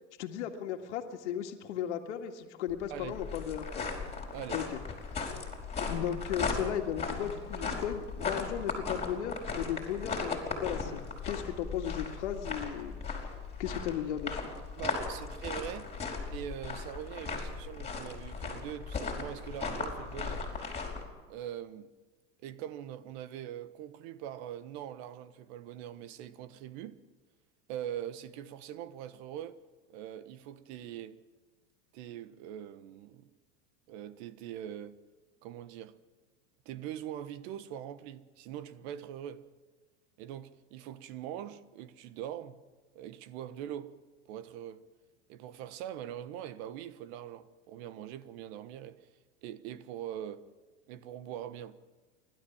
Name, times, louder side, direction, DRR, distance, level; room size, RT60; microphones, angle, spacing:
voice 1, 0.2-3.9 4.5-5.3 5.8-12.9 13.6-14.4, left 9 dB, 75° left, 2.0 m, -36 dB
sound 1, 2.7-21.0, left 4 dB, 20° left, 4.9 m, -37 dB
voice 2, 2.9-3.2 4.3-4.6 14.8-15.9 16.3-20.4 21.3-21.9 22.4-27.0 27.7-29.6 29.9-31.2 31.9-33.3 33.9-35.0 35.4-36.0 36.6-39.4 40.2-42.6 42.9-44.0 44.3-44.8 45.3-49.1 49.4-50.4 50.9-51.8, right 11 dB, 60° right, 1.3 m, -42 dB
29.5 x 12.5 x 7.3 m
hypercardioid pair, 110°, 36 cm